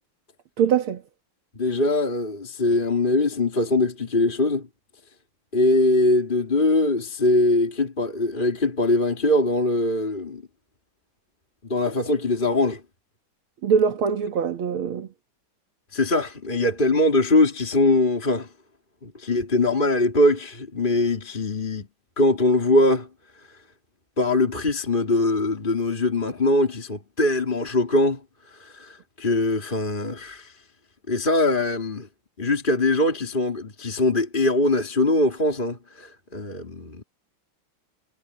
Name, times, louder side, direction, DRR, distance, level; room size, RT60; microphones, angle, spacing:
voice 1, 0.6-1.0 13.6-15.1, right 7 dB, 75° right, 2.3 m, -22 dB
voice 2, 1.5-4.7 5.5-10.4 11.7-12.8 15.9-18.5 19.0-21.9 22.2-23.1 24.2-28.2 28.5-30.5 31.1-32.1 32.4-37.0, left 2 dB, 20° left, 3.0 m, -22 dB
omnidirectional pair, 2.3 m